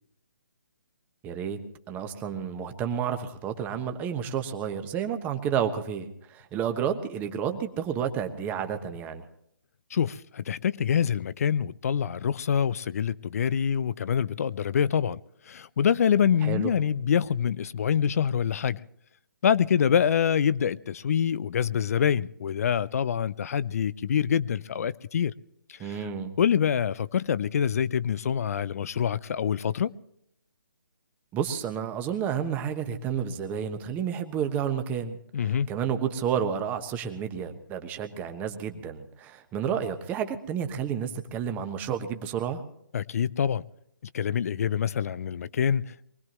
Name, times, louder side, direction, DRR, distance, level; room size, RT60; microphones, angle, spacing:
voice 1, 1.2-1.6 1.9-9.2 16.4-16.7 25.8-26.3 31.3-35.2 35.7-42.6, right 8 dB, 15° right, 1.2 m, -30 dB
voice 2, 9.9-15.2 15.5-18.8 19.4-25.3 25.7-26.1 26.4-29.9 35.3-35.7 42.9-43.6 44.1-46.0, left 8 dB, 45° left, 0.5 m, -25 dB
24.0 x 19.0 x 3.0 m
figure-of-eight pair, 145°, 11 cm